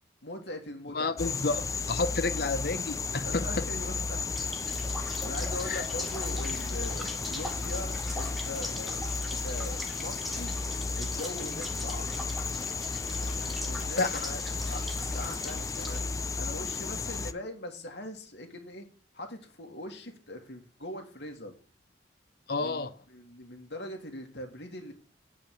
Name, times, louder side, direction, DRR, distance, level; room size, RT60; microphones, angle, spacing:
voice 1, 0.2-1.2 2.0-2.1 3.2-4.2 5.2-10.5 11.0-12.0 13.1-14.4 14.7-16.0 16.3-18.9 19.1-21.6 22.6-24.9, left 1 dB, 80° left, 2.4 m, -41 dB
voice 2, 0.9-3.6 5.7-5.8 14.0-14.2 22.5-22.9, left 3 dB, 60° left, 0.8 m, -30 dB
sound 1, 1.2-17.3, left 4 dB, 20° left, 0.4 m, -33 dB
sound 2, 4.4-16.0, equal, ahead, 1.5 m, -42 dB
8.6 x 5.4 x 6.3 m
head